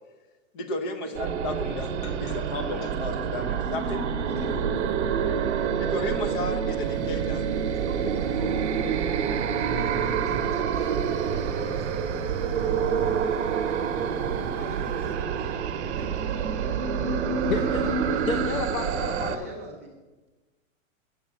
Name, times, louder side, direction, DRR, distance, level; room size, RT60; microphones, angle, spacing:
voice 1, 0.5-4.0 5.8-7.5, left 2 dB, 40° left, 8 dB, 1.1 m, -33 dB
sound 1, 1.1-19.4, right 7 dB, 55° right, 0.9 m, -27 dB
voice 2, 3.8-4.8 7.7-8.7 9.6-11.0 11.6-12.9 14.5-16.9 17.4-18.3 19.3-20.0, right 2 dB, 10° right, -4 dB, 0.3 m, -42 dB
sound 2, 4.2-12.8, right 8 dB, 90° right, 0.8 m, -35 dB
sound 3, 6.8-15.2, left 5 dB, 60° left, 2.5 m, -45 dB
voice 3, 17.5-17.8 18.3-19.5, left 6 dB, 80° left, 6 dB, 1.0 m, -31 dB
8.4 x 7.5 x 5.8 m, 1.2 s
hypercardioid pair, 165°, 41 cm